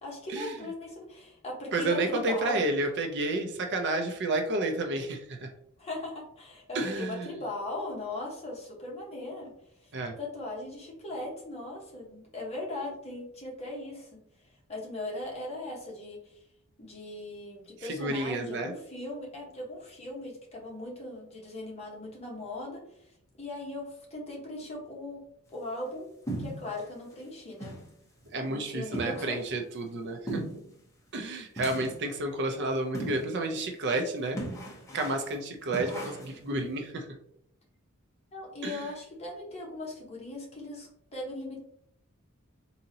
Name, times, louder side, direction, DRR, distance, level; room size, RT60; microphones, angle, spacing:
voice 1, 0.0-2.6 5.8-9.5 9.8-9.9 10.2-14.2 14.7-16.4 16.8-22.8 23.4-25.2 25.5-26.1 26.4-27.8 28.5-29.5 38.3-41.6, left 2 dB, 30° left, -2 dB, 1.1 m, -39 dB
voice 2, 1.7-5.5 6.7-7.3 9.9-10.2 17.8-18.7 28.3-30.4 31.1-34.4 34.9-37.0 38.6-38.9, right 2 dB, 55° right, 5 dB, 0.5 m, -31 dB
sound 1, 26.3-26.8 27.2-27.3 27.6-27.9 28.2-28.3 28.9-29.5 30.3-30.7 31.6-32.1 32.9-33.4 33.7-33.8 34.4-35.3 35.7-36.4, right 1 dB, 15° left, 0.7 m, -37 dB
3.8 x 2.8 x 2.7 m, 0.72 s
head